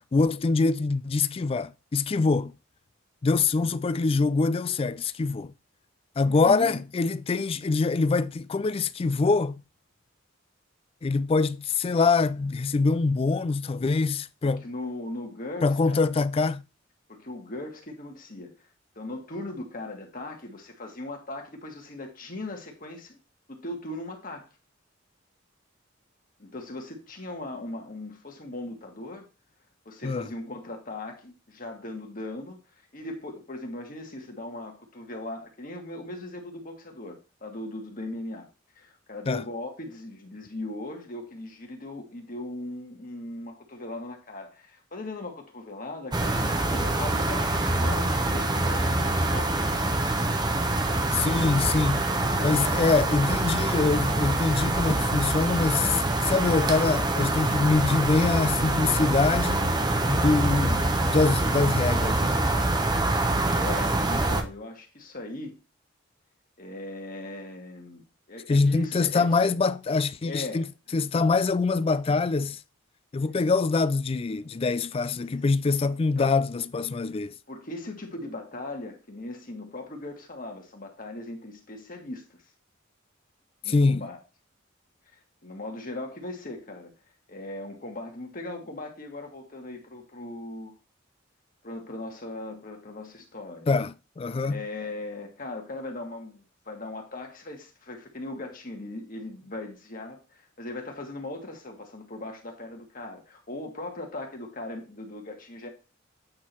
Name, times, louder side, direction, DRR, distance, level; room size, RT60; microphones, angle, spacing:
voice 1, 0.1-2.5 3.2-5.5 6.2-9.6 11.0-14.7 15.6-16.6 30.0-30.3 39.3-39.4 51.1-52.1 52.4-59.8 60.1-62.4 68.5-70.7 70.9-72.6 73.1-77.3 83.7-84.1 93.7-94.6, left 4 dB, 30° left, 0.3 m, -24 dB
voice 2, 6.2-6.8 14.4-16.1 17.1-18.7 19.0-23.2 23.5-24.4 26.4-29.3 29.9-32.6 32.9-38.5 38.8-49.9 52.2-52.7 63.6-65.5 66.6-68.0 68.3-69.6 70.2-70.7 76.2-76.4 77.5-82.4 83.6-84.2 85.1-86.9 87.3-90.7 91.6-93.7 94.4-105.7, left 2 dB, 45° left, 1.8 m, -39 dB
sound 1, 46.1-64.4, right 2 dB, 20° right, 0.8 m, -25 dB
8.7 x 3.8 x 4.3 m
head